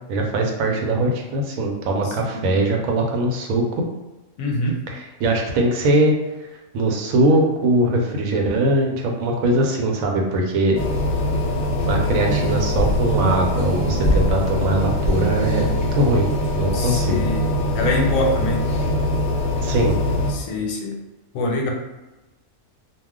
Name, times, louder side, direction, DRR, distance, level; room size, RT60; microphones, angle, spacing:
voice 1, 0.1-3.8 4.9-6.1 6.7-10.8 11.9-16.2 16.5-17.2 19.6-20.0, right 1 dB, 85° right, 1 dB, 1.0 m, -21 dB
voice 2, 2.0-2.6 4.4-4.8 16.7-17.4 17.7-18.6 20.3-20.9 21.3-21.7, left 1 dB, 90° left, 1 dB, 1.0 m, -24 dB
sound 1, 10.7-20.3, left 1 dB, 55° left, 0.5 m, -22 dB
2.4 x 2.1 x 3.5 m, 1.1 s
omnidirectional pair, 1.4 m